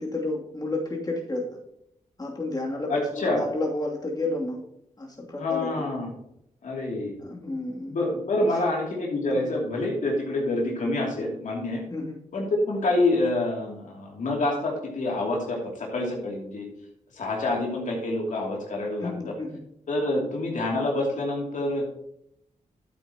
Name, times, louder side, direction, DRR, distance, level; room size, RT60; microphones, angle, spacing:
voice 1, 0.0-1.4 2.2-4.6 5.0-5.7 7.2-8.0 8.4-8.6 9.3-9.4 11.9-12.2 19.0-19.6, left 2 dB, 30° left, -2 dB, 2.8 m, -31 dB
voice 2, 2.9-3.4 5.4-6.1 6.6-7.1 7.9-11.8 12.3-16.7 17.2-19.3 19.9-21.8, left 2 dB, 70° left, -2 dB, 2.8 m, -27 dB
11.5 x 8.6 x 2.9 m, 0.75 s
cardioid pair, 70°, 14 cm